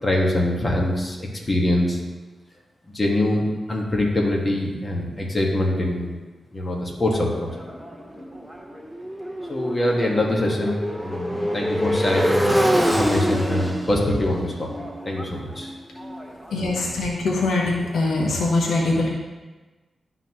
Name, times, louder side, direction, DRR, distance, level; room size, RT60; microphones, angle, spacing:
voice 1, 0.0-2.0 2.9-6.2 6.5-7.5 9.5-14.7 15.0-15.8, left 1 dB, 35° left, -2 dB, 1.6 m, -24 dB
Motorcycle, 7.1-17.0, equal, ahead, 0.8 m, -26 dB
voice 2, 16.5-19.1, left 2 dB, 90° left, -2 dB, 1.0 m, -22 dB
11.5 x 4.0 x 3.1 m, 1.3 s
cardioid pair, 70°, 0 cm